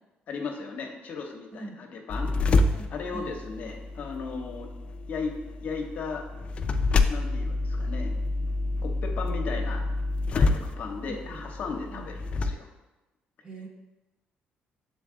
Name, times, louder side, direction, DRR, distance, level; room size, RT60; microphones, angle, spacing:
voice 1, 0.3-4.7 5.1-6.3 7.1-8.1 8.8-9.8 10.3-12.7, left 4 dB, 50° left, 2 dB, 0.8 m, -36 dB
sound 1, 2.1-12.5, left 3 dB, 35° left, 0.3 m, -28 dB
voice 2, 2.7-3.3 11.1-11.4 11.9-12.1 13.4-13.7, right 2 dB, 30° right, 0 dB, 1.0 m, -42 dB
7.0 x 4.0 x 3.7 m, 1.0 s
cardioid pair, 150°, 4 cm